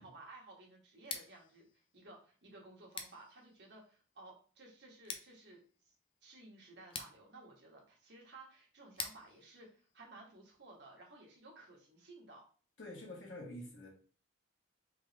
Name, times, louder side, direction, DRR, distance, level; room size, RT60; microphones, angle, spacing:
voice 1, 0.0-1.7 1.9-5.9 6.2-12.4, right 2 dB, 60° right, -1 dB, 1.3 m, -56 dB
Scissors, 0.9-10.8, left 5 dB, 25° left, 0.4 m, -51 dB
voice 2, 12.8-13.9, left 1 dB, 75° left, -2 dB, 1.3 m, -47 dB
3.7 x 2.9 x 3.2 m, 0.40 s
head